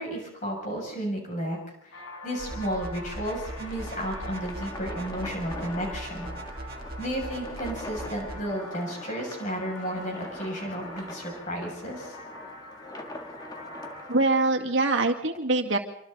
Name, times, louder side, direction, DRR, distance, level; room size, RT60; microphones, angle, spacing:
voice 1, 0.0-6.3 7.0-12.2, equal, 35° left, 0 dB, 7.0 m, -33 dB
sound 1, 1.9-14.2, left 1 dB, 90° left, 4.4 m, -44 dB
sound 2, 2.4-8.4, right 1 dB, 45° right, 1.8 m, -40 dB
sound 3, 3.0-14.3, left 1 dB, 20° left, 1.7 m, -44 dB
voice 2, 14.1-15.8, right 2 dB, 60° right, 2 dB, 2.1 m, -23 dB
26.5 x 24.5 x 4.0 m, 0.74 s
head